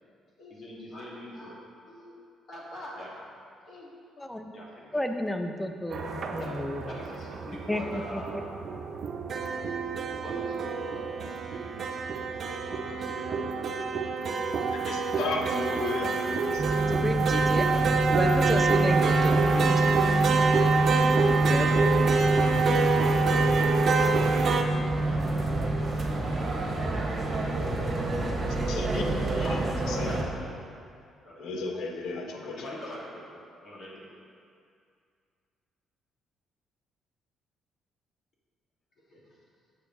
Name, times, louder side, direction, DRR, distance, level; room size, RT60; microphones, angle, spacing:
voice 1, 0.4-2.2 2.5-3.2 3.7-5.0 6.4-8.5 9.4-9.7 10.1-11.8 12.5-14.1 15.3-15.8 22.5-25.3 25.6-28.7 29.1-29.7 30.0-30.5 31.2-32.0 32.3-34.1 39.1-39.2, left 1 dB, 55° left, -4 dB, 1.7 m, -45 dB
voice 2, 4.2-4.5 4.9-7.0 7.7-8.2 16.8-17.7 18.1-19.9 21.4-21.7, left 1 dB, 10° left, 6 dB, 0.5 m, -32 dB
sound 1, 5.9-24.6, right 4 dB, 55° right, 0.4 m, -27 dB
voice 3, 14.7-16.7 28.5-30.2 31.4-32.8, left 3 dB, 75° left, 3 dB, 0.6 m, -35 dB
sound 2, 16.6-30.2, right 2 dB, 35° right, 1.1 m, -26 dB
6.8 x 5.1 x 3.6 m, 2.3 s
supercardioid pair, 70°, 0 cm